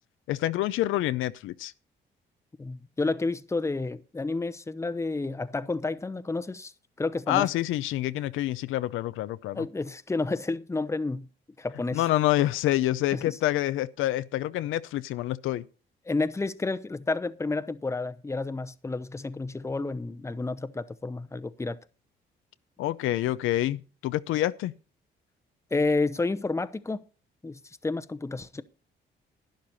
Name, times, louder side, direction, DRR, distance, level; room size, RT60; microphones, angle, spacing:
voice 1, 0.3-1.7 7.3-9.7 11.9-15.6 22.8-24.7, left 14 dB, 85° left, 0.6 m, -27 dB
voice 2, 2.6-6.7 7.0-7.5 9.5-11.3 11.6-12.0 13.1-13.3 16.1-21.8 25.7-27.0 27.4-28.6, left 3 dB, 15° left, 0.8 m, -30 dB
12.0 x 10.5 x 4.1 m
cardioid pair, 90°, 20 cm